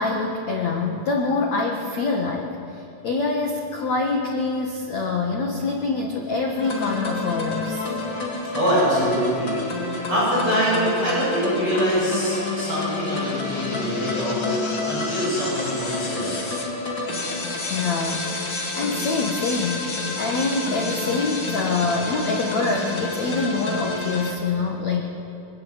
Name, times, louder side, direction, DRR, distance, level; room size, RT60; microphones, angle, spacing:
voice 1, 0.0-7.8 17.7-19.9 20.2-25.0, left 3 dB, 85° left, 1 dB, 1.5 m, -25 dB
sound 1, 6.6-24.3, left 3 dB, 30° left, 2.4 m, -29 dB
voice 2, 8.5-9.8 10.0-16.4, equal, 25° right, -7 dB, 7.7 m, -24 dB
25.0 x 19.0 x 7.9 m, 2.9 s
omnidirectional pair, 5.8 m